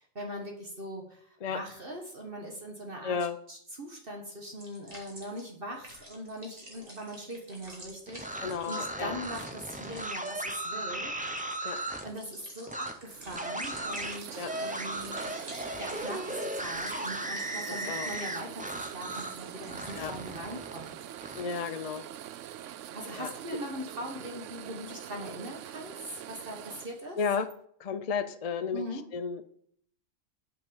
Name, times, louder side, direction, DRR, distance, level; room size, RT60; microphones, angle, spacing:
voice 1, 0.0-3.2 3.5-11.1 12.0-21.0 22.9-27.2 28.7-29.1, equal, 45° right, 1 dB, 1.6 m, -41 dB
voice 2, 3.0-3.4 8.4-9.1 11.6-11.8 14.4-14.5 17.7-18.1 19.9-20.1 21.3-22.0 23.2-23.3 27.2-27.5 27.8-29.5, left 6 dB, 50° left, 10 dB, 0.5 m, -33 dB
sound 1, 4.6-19.9, right 1 dB, 30° right, 2.6 m, -50 dB
sound 2, 8.1-12.1 12.7-12.9 13.3-19.4 19.7-21.4, right 1 dB, 10° right, 0.6 m, -36 dB
sound 3, 12.0-27.6, right 11 dB, 75° right, 0.9 m, -44 dB
7.7 x 5.9 x 7.0 m, 0.63 s
omnidirectional pair, 1.3 m